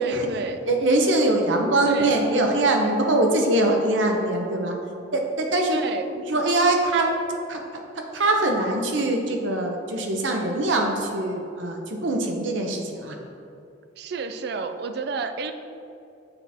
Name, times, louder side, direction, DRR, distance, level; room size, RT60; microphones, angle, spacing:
voice 1, 0.0-0.6 1.8-2.2 5.7-6.1 14.0-15.5, right 4 dB, 60° right, 8 dB, 0.3 m, -30 dB
voice 2, 0.7-4.7 5.1-5.8 6.1-7.1 7.5-7.6 8.1-13.2, right 2 dB, 85° right, 2 dB, 0.8 m, -22 dB
6.9 x 3.5 x 4.2 m, 2.6 s
head